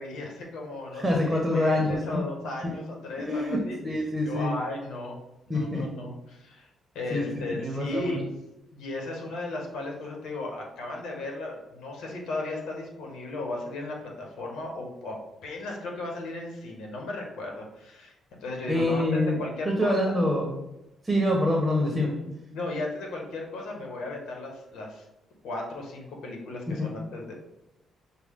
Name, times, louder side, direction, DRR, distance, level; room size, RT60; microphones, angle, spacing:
voice 1, 0.0-3.8 4.2-5.2 5.5-6.7 6.9-8.3 8.7-18.1 18.4-20.2 22.5-25.0 25.4-27.3, left 2 dB, 80° left, 0 dB, 1.2 m, -35 dB
voice 2, 1.0-2.2 3.2-4.5 5.5-5.9 7.1-8.2 18.7-19.4 19.6-20.5 21.0-22.1 26.8-26.9, left 1 dB, 10° right, -1 dB, 1.1 m, -26 dB
6.1 x 2.3 x 3.6 m, 0.93 s
cardioid pair, 90°, 0 cm